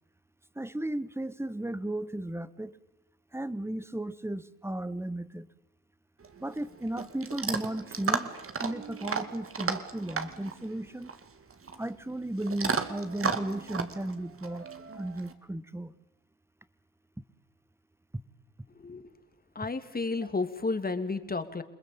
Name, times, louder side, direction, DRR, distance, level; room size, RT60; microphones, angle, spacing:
voice 1, 0.5-2.8 3.3-5.5 6.4-8.3 8.6-11.1 11.8-14.7 15.0-15.9, right 1 dB, 10° right, 16 dB, 1.5 m, -35 dB
Chewing mastication / Dog, 6.2-15.3, right 5 dB, 45° right, 2.5 m, -35 dB
voice 2, 19.5-21.6, left 3 dB, 30° left, 10 dB, 2.7 m, -32 dB
28.5 x 20.5 x 8.8 m, 0.87 s
supercardioid pair, 65°, 32 cm